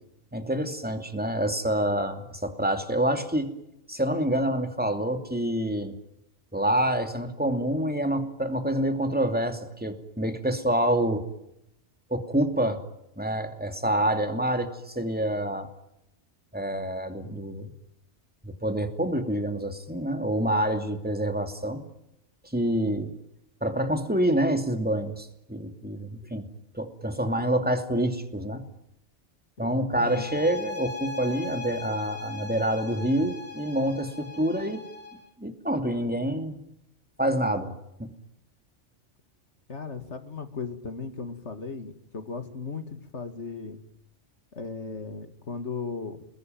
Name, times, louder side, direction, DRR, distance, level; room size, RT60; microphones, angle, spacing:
voice 1, 0.3-3.5 3.9-5.9 6.5-11.2 12.1-12.8 13.2-15.7 16.5-17.7 18.4-21.8 22.4-23.1 23.6-26.4 26.7-28.6 29.6-34.8 35.4-36.6 37.2-37.7 38.0-38.1, right 1 dB, 5° right, 6 dB, 2.7 m, -27 dB
voice 2, 29.6-30.3 39.7-43.8 44.5-46.3, left 4 dB, 65° left, 8 dB, 2.6 m, -36 dB
sound 1, 30.0-35.3, left 3 dB, 30° left, 4.5 m, -39 dB
28.5 x 21.0 x 9.3 m, 0.82 s
omnidirectional pair, 1.2 m